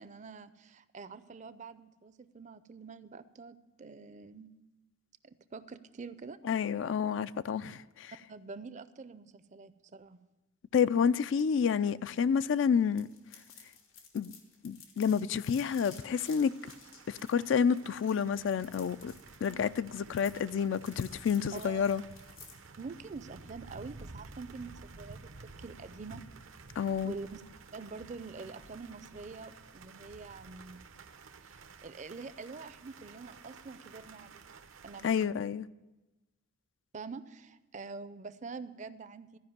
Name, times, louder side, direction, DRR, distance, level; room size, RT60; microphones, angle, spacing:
voice 1, 0.0-4.5 5.5-6.4 8.3-10.2 21.5-21.8 22.8-26.2 27.0-27.4 27.7-30.8 31.4-31.6 31.8-34.5 34.8-35.4 36.9-39.4, right 4 dB, 35° right, 0.4 m, -46 dB
voice 2, 6.4-8.1 10.7-13.1 14.1-14.3 14.6-16.5 17.1-19.1 19.4-22.0 26.8-27.1 35.0-35.7, left 7 dB, 70° left, 0.3 m, -29 dB
sound 1, 13.0-22.7, left 6 dB, 90° left, 1.6 m, -54 dB
sound 2, 15.6-35.3, right 4 dB, 85° right, 0.8 m, -52 dB
13.5 x 5.2 x 9.2 m
head